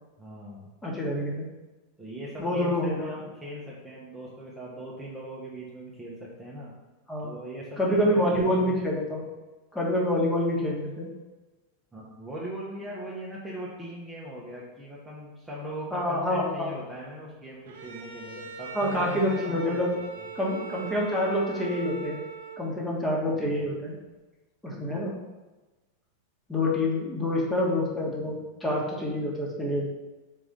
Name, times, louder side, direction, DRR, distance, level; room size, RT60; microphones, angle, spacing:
voice 1, 0.2-0.7 2.0-6.7 7.2-8.8 11.9-19.8 24.7-25.1, equal, 10° right, -6 dB, 1.1 m, -40 dB
voice 2, 0.8-1.5 2.4-3.1 7.1-7.3 7.8-9.2 9.7-11.1 15.9-16.7 18.7-19.9 20.3-22.2 22.6-24.0 24.6-25.1 26.5-29.9, left 1 dB, 10° left, -3 dB, 1.5 m, -27 dB
Bowed string instrument, 17.7-22.9, right 5 dB, 60° right, 0.7 m, -40 dB
4.7 x 3.9 x 5.4 m, 1.2 s
figure-of-eight pair, 90°, 0 cm